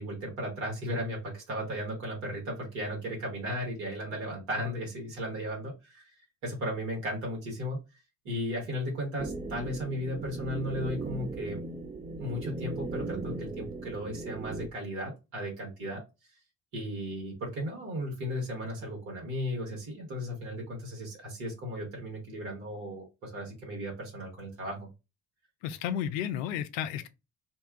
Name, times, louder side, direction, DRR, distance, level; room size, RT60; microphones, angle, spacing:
voice 1, 0.0-6.0 6.4-7.8 8.2-11.6 12.2-16.0 16.7-24.9, equal, 80° right, 1.4 m, -35 dB
sound 1, 9.2-14.7, right 2 dB, 20° right, 0.5 m, -38 dB
voice 2, 25.6-27.1, left 9 dB, 85° left, 0.5 m, -32 dB
2.8 x 2.2 x 3.6 m
hypercardioid pair, 50°, 38 cm